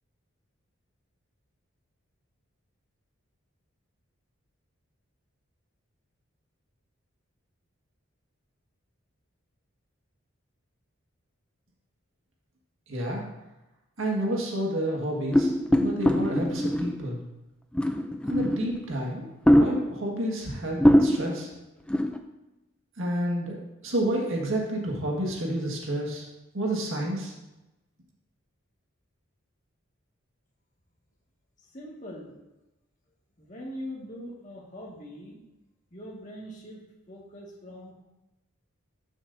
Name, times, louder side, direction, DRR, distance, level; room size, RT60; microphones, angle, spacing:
voice 1, 12.9-13.2 14.0-15.5 15.8-17.2 18.3-21.5 23.0-26.2 26.5-27.3, right 1 dB, 70° right, -1 dB, 1.8 m, -30 dB
sound 1, 15.3-17.1 17.7-18.9 19.5-20.1 20.5-20.6 20.8-21.4 21.9-22.2, equal, 5° left, 0.4 m, -22 dB
voice 2, 31.7-32.3 33.4-35.4 35.9-36.8 37.1-37.9, equal, 35° left, -3 dB, 1.9 m, -41 dB
12.5 x 7.2 x 2.7 m, 0.99 s
head